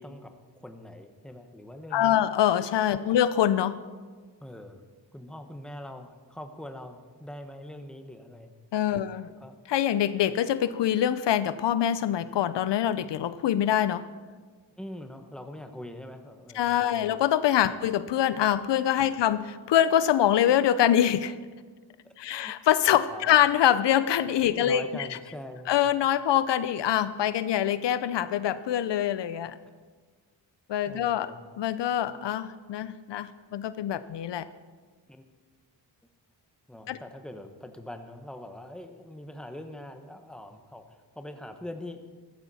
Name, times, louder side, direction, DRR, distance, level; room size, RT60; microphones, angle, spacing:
voice 1, 0.0-2.2 2.9-3.0 4.4-4.8 5.1-8.5 8.9-9.1 9.4-9.6 14.8-17.2 17.7-17.8 19.1-19.2 22.0-22.1 22.4-22.5 23.1-23.4 24.5-25.8 30.9-31.4 35.1-35.3 36.7-42.0, left 1 dB, ahead, 6 dB, 1.0 m, -43 dB
voice 2, 1.9-3.9 8.7-9.3 9.7-14.0 16.5-21.4 22.2-25.1 25.7-29.6 30.7-31.3 31.6-34.5 36.9-37.0, left 10 dB, 70° left, 14 dB, 0.6 m, -24 dB
15.0 x 14.0 x 4.2 m, 1.5 s
wide cardioid pair, 115°, 44 cm